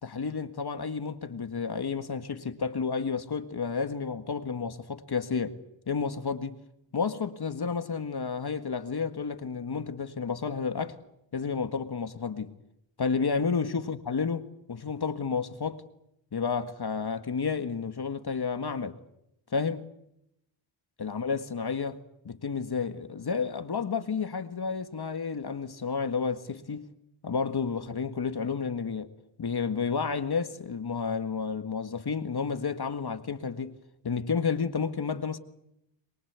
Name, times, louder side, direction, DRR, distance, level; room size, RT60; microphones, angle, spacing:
voice 1, 0.0-5.6 5.9-6.6 6.9-11.0 11.3-12.5 13.0-15.8 16.3-19.0 19.5-19.9 21.0-22.0 22.3-26.9 27.2-29.1 29.4-33.8 34.0-35.4, left 5 dB, 55° left, 1.8 m, -31 dB
23.0 x 23.0 x 8.2 m
wide cardioid pair, 90°, 46 cm